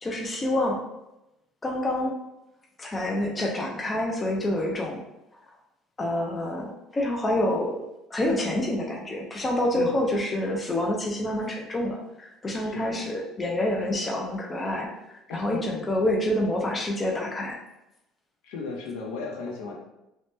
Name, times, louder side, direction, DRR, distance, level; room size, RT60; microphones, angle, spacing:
voice 1, 0.0-0.8 1.6-2.1 2.8-5.0 6.0-7.8 8.1-14.9 15.3-17.6, left 1 dB, 15° left, -1 dB, 0.3 m, -27 dB
voice 2, 9.7-10.1 12.6-13.1 15.3-15.6 18.4-19.7, left 3 dB, 80° left, 0 dB, 0.6 m, -36 dB
2.9 x 2.1 x 3.0 m, 0.90 s
cardioid pair, 170°, 0 cm